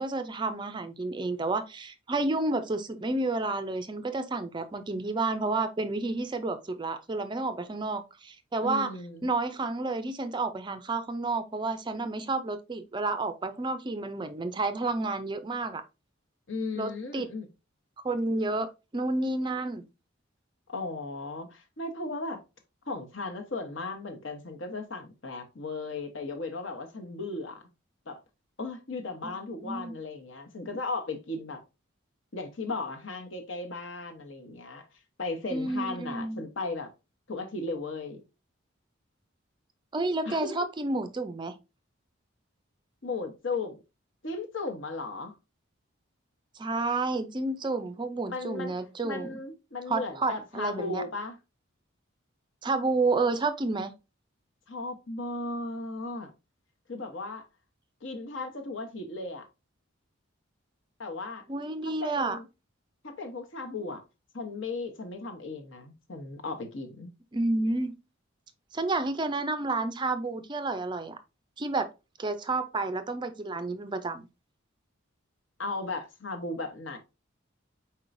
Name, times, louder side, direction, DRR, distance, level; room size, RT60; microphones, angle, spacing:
voice 1, 0.0-8.9 9.2-15.8 16.8-17.3 18.0-19.9 29.2-29.3 29.6-29.9 35.5-36.4 39.9-41.5 46.5-49.3 49.9-51.0 52.6-53.9 61.5-62.4 67.3-67.9 68.7-71.2 71.6-71.9 72.2-74.3, right 3 dB, 20° right, 0.4 m, -30 dB
voice 2, 8.6-9.3 16.5-17.5 20.7-22.4 22.9-27.6 28.1-28.2 28.6-31.6 32.3-34.8 35.2-36.9 37.3-38.2 40.2-40.7 43.0-43.8 44.2-45.3 48.3-48.7 49.0-51.4 54.7-56.3 56.9-57.4 58.0-59.4 61.0-61.4 61.8-62.5 63.0-64.0 64.3-67.1 75.6-77.0, left 3 dB, 65° left, 1.0 m, -36 dB
4.6 x 4.4 x 2.5 m
head